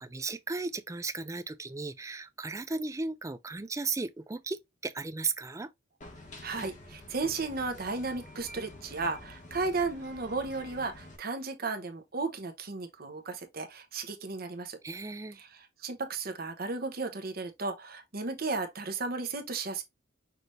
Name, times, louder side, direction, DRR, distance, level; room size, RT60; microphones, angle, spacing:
voice 1, 0.0-5.7 14.8-15.4, right 4 dB, 15° right, 0.4 m, -35 dB
sound 1, 6.0-11.2, left 1 dB, 40° left, 1.1 m, -48 dB
voice 2, 6.4-14.8 15.4-19.8, right 3 dB, 50° right, 1.0 m, -34 dB
5.9 x 3.3 x 2.6 m
head